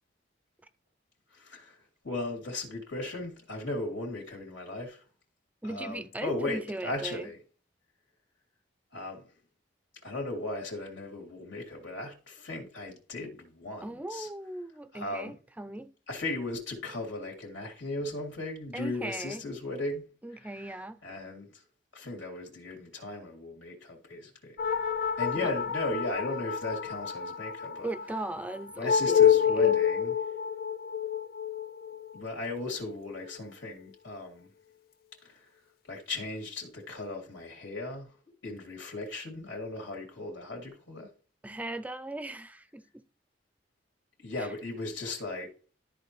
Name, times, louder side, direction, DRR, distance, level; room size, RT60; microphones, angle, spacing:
voice 1, 1.3-5.0 5.6-7.4 8.9-9.2 10.0-14.3 14.9-15.3 16.1-20.1 20.3-20.8 21.0-21.6 21.9-24.6 25.2-27.9 28.7-30.2 32.1-34.5 35.2-35.5 35.9-38.2 38.4-41.1 44.2-45.5, left 2 dB, 85° left, 2.7 m, -37 dB
voice 2, 5.6-7.3 13.8-15.9 18.7-19.5 20.2-21.0 25.4-25.5 27.8-29.2 29.6-29.8 41.4-43.1 44.4-44.5, right 2 dB, 10° right, 0.5 m, -38 dB
sound 1, 24.6-33.4, left 9 dB, 55° left, 0.4 m, -28 dB
13.0 x 4.5 x 3.1 m
head